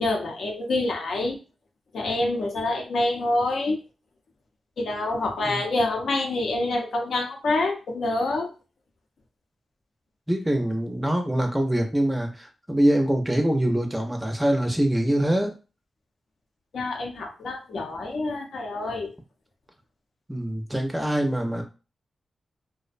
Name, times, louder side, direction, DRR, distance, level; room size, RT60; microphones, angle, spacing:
voice 1, 0.0-1.4 1.9-3.8 4.8-8.5 16.7-19.1, left 2 dB, 80° left, 2 dB, 0.6 m, -26 dB
voice 2, 10.3-15.5 20.3-21.6, right 1 dB, 10° right, 3 dB, 0.5 m, -24 dB
2.5 x 2.1 x 2.4 m, 0.33 s
wide cardioid pair, 100°, 0 cm